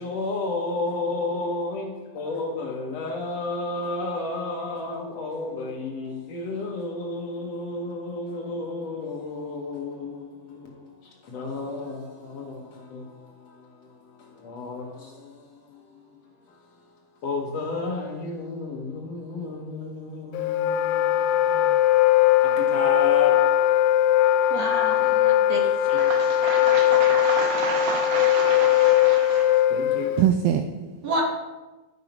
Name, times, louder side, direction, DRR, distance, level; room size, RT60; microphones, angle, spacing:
voice 1, 0.0-16.0 16.5-16.6 17.2-21.8 22.4-23.3 29.7-30.1, left 3 dB, 70° left, 1.6 m, -32 dB
Wind instrument woodwind instrument, 20.3-30.3, left 12 dB, 90° left, 2.6 m, -20 dB
voice 2, 24.5-25.6 25.9-26.0 31.0-31.2, right 2 dB, 60° right, 1.8 m, -29 dB
voice 3, 26.0-29.7 30.2-30.6, right 9 dB, 85° right, 2.0 m, -27 dB
12.0 x 6.0 x 5.3 m
omnidirectional pair, 4.7 m